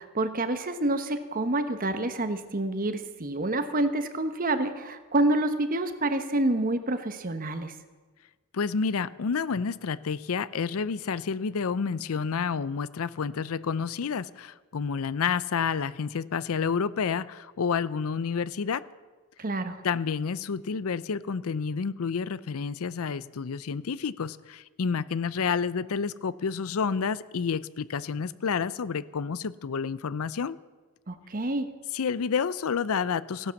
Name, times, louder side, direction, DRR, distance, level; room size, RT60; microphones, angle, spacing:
voice 1, 0.0-7.7 19.4-19.8 31.1-31.7, right 2 dB, 40° right, 10 dB, 1.1 m, -28 dB
voice 2, 8.5-18.8 19.8-30.6 31.9-33.5, left 6 dB, 75° left, 18 dB, 0.5 m, -29 dB
16.5 x 11.0 x 7.1 m, 1.4 s
head